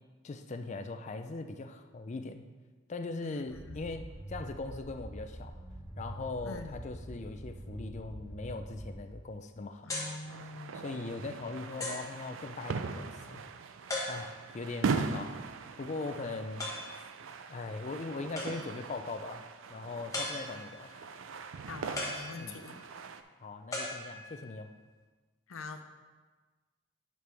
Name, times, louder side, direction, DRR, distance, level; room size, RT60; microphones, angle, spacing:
voice 1, 0.2-2.4 2.9-5.5 6.0-9.9 10.7-13.4 14.1-15.4 15.8-16.7 17.0-17.1 17.5-19.4 19.7-20.9 22.3-22.6 23.4-24.7, left 3 dB, 35° left, 7 dB, 0.4 m, -40 dB
voice 2, 3.2-4.0 6.4-6.8 9.8-11.0 21.7-22.8 25.5-25.8, left 3 dB, 85° left, 7 dB, 0.7 m, -44 dB
sound 1, 3.5-9.3, right 1 dB, 15° right, 1.3 m, -45 dB
sound 2, 9.9-10.2 11.0-11.1 11.8-12.2 13.9-14.5 16.6-17.0 18.4-18.9 20.1-20.8 22.0-22.8 23.7-24.6, left 2 dB, 15° left, 1.2 m, -38 dB
sound 3, 10.2-23.2, right 4 dB, 70° right, 0.4 m, -40 dB
9.4 x 5.4 x 3.4 m, 1.3 s
head